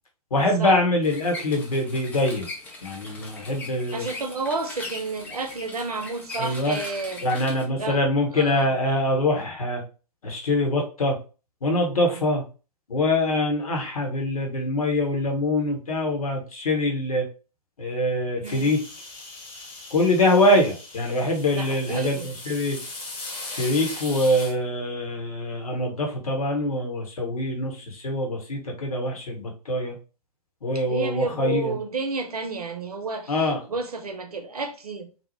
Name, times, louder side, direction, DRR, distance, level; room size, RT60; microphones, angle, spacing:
voice 1, 0.3-2.5 2.8-4.1 6.4-6.8 7.2-9.8 10.2-11.2 11.6-12.4 12.9-17.3 17.8-18.8 19.9-22.8 23.5-30.0 30.6-31.8 33.3-33.6, left 1 dB, 65° left, 1.0 m, -24 dB
sound 1, 1.0-7.6, left 2 dB, 10° left, 0.3 m, -40 dB
voice 2, 3.9-7.2 7.7-8.0 8.3-8.7 12.0-12.2 18.4-18.8 21.5-22.3 30.9-35.1, right 3 dB, 75° right, 0.6 m, -31 dB
sound 2, 18.4-24.5, left 2 dB, 25° left, 0.9 m, -39 dB
2.7 x 2.0 x 2.9 m
figure-of-eight pair, 120°, 20 cm